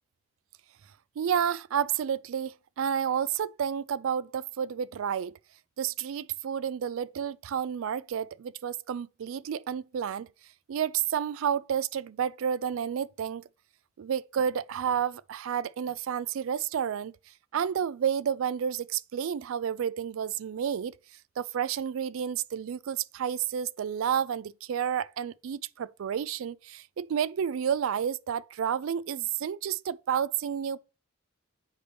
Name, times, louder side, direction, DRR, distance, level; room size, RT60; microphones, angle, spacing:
voice 1, 1.2-5.3 5.8-10.3 10.7-13.4 14.0-17.1 17.5-20.9 21.4-30.8, right 8 dB, 70° right, 0.3 m, -30 dB
8.2 x 3.4 x 5.3 m
head